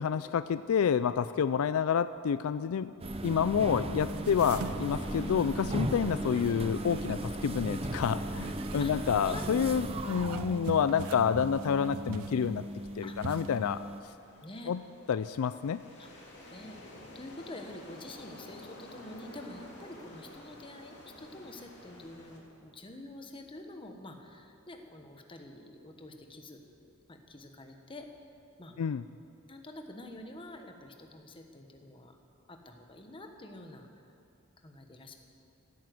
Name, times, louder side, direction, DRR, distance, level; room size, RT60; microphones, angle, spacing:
voice 1, 0.0-2.9 3.2-12.6 13.0-13.8 14.7-14.8 15.1-15.8 28.8-29.0, left 7 dB, 75° left, 14 dB, 0.4 m, -29 dB
sound 1, 3.0-14.0, right 1 dB, 25° right, 0.7 m, -37 dB
sound 2, 4.0-5.2 5.6-7.5 7.9-8.8 9.9-12.9 13.2-13.5, right 6 dB, 75° right, 0.4 m, -44 dB
sound 3, 4.3-22.4, left 1 dB, 55° left, 3.0 m, -52 dB
voice 2, 9.2-9.8 13.0-13.2 14.4-14.7 16.0-16.1 16.5-16.8 17.1-28.1 28.6-28.8 29.5-32.2 32.5-33.9 34.6-35.1, left 1 dB, 25° left, 4 dB, 1.2 m, -47 dB
16.0 x 9.3 x 7.8 m, 2.7 s
head